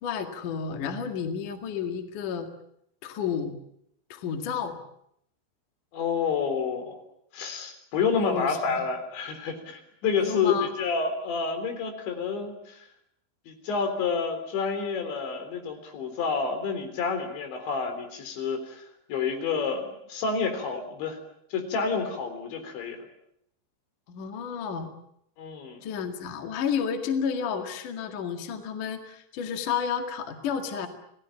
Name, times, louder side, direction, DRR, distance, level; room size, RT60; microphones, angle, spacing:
voice 1, 0.0-2.5 3.0-3.6 4.1-4.8 8.2-8.8 10.2-10.7 24.1-24.9 25.8-30.9, left 7 dB, 55° left, 6 dB, 3.1 m, -31 dB
voice 2, 5.9-7.0 7.3-12.9 13.5-18.8 19.1-19.8 20.1-21.2 21.5-23.1 25.4-25.8, left 5 dB, 80° left, 7 dB, 6.0 m, -29 dB
29.0 x 18.5 x 8.6 m, 0.75 s
omnidirectional pair, 5.1 m